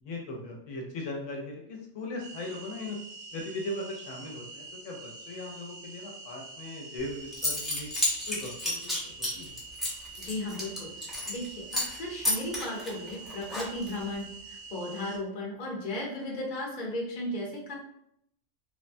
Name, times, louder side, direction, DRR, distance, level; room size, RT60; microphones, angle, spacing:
voice 1, 0.0-3.0 3.3-7.9 8.3-9.6, left 2 dB, 80° left, 0 dB, 1.0 m, -39 dB
sound 1, 2.2-15.2, right 3 dB, 85° right, 0.9 m, -46 dB
Zipper (clothing) / Coin (dropping), 7.0-7.1 7.3-11.4 11.7-12.0 12.2-14.0, left 1 dB, ahead, 0.5 m, -31 dB
voice 2, 10.2-17.7, left 1 dB, 45° left, -2 dB, 0.8 m, -36 dB
3.3 x 2.1 x 2.5 m, 0.73 s
omnidirectional pair, 1.3 m